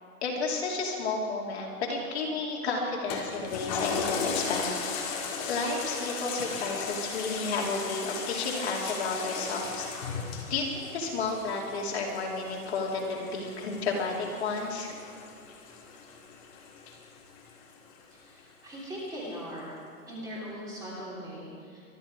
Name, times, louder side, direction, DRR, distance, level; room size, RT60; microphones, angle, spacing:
voice 1, 0.2-4.7 5.0-5.2 5.5-9.9 10.5-14.9, left 3 dB, 45° left, -2 dB, 2.8 m, -32 dB
Toilet flush, 3.1-17.9 18.4-18.5, left 5 dB, 25° left, 2.0 m, -37 dB
voice 2, 18.1-19.7 20.1-21.8, equal, 10° right, -6 dB, 3.2 m, -40 dB
24.5 x 11.5 x 4.8 m, 2.3 s
hypercardioid pair, 160°, 45 cm